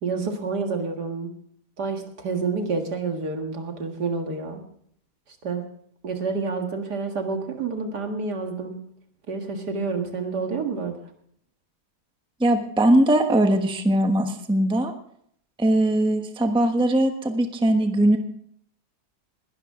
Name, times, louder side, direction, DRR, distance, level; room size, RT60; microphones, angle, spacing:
voice 1, 0.0-1.3 1.8-4.6 5.4-5.6 6.0-8.8 9.3-11.0, right 4 dB, 70° right, 4 dB, 2.4 m, -28 dB
voice 2, 12.4-14.9 15.6-18.2, right 1 dB, 5° right, 5 dB, 0.9 m, -20 dB
20.0 x 12.5 x 3.8 m, 0.65 s
omnidirectional pair, 1.8 m